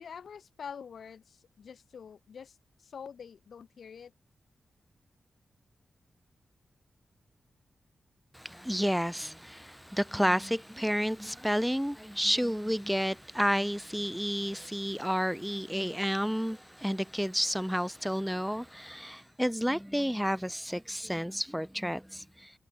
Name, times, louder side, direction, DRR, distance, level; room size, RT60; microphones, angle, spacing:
voice 1, 0.0-4.1, left 7 dB, 75° left, 0.5 m, -46 dB
voice 2, 8.3-22.5, equal, ahead, 0.3 m, -31 dB
wide cardioid pair, 95°, 0 cm